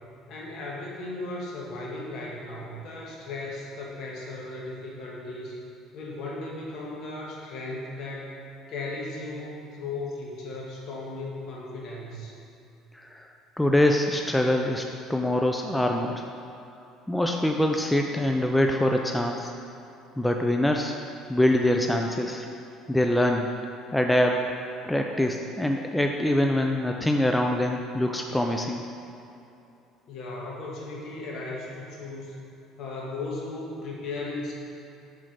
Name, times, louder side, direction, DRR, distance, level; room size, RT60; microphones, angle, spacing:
voice 1, 0.3-5.6 5.9-12.4 30.1-32.4 32.8-34.5, left 2 dB, 60° left, -3 dB, 1.4 m, -36 dB
voice 2, 12.9-13.3 13.6-14.8 15.1-16.2 17.1-19.5 20.2-21.0 21.3-22.5 22.9-23.5 23.9-24.5 24.9-28.8, left 1 dB, 5° left, 2 dB, 0.3 m, -24 dB
4.8 x 4.5 x 5.8 m, 2.7 s
cardioid pair, 115°, 0 cm